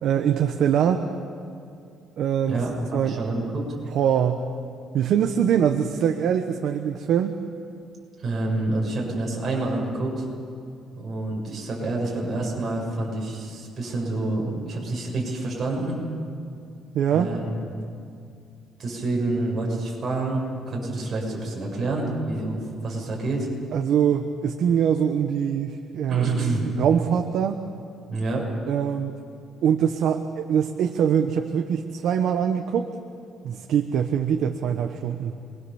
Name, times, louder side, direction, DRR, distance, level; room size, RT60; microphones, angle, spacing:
voice 1, 0.0-1.0 2.2-2.6 2.9-3.2 3.9-4.4 4.9-7.3 16.9-17.3 23.7-26.4 26.8-27.6 28.7-29.1 29.6-32.9 33.4-35.3, right 8 dB, 60° right, 5 dB, 1.2 m, -23 dB
voice 2, 2.5-3.7 8.2-10.3 10.9-16.0 17.1-17.8 18.8-23.5 26.1-26.7 28.1-28.5, right 2 dB, 30° right, -2 dB, 7.4 m, -28 dB
27.5 x 22.5 x 7.2 m, 2.3 s
cardioid pair, 165°, 0 cm